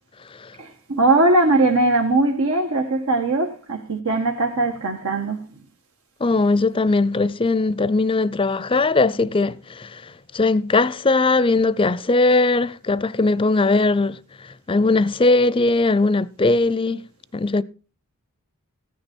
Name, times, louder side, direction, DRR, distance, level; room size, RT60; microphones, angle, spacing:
voice 1, 0.6-5.4, right 2 dB, 85° right, 1.4 m, -20 dB
voice 2, 6.2-14.2 14.7-17.0 17.3-17.6, left 3 dB, 25° left, 0.5 m, -19 dB
14.5 x 9.8 x 4.4 m
head